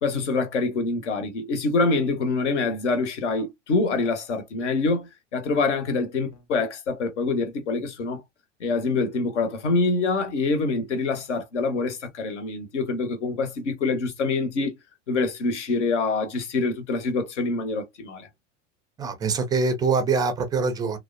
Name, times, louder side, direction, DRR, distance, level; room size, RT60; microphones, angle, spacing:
voice 1, 0.0-8.2 8.6-14.8 15.1-18.3, left 3 dB, 65° left, 0.9 m, -25 dB
voice 2, 19.0-21.0, right 4 dB, 10° right, 0.4 m, -24 dB
3.3 x 2.1 x 2.4 m
figure-of-eight pair, 85°, 38 cm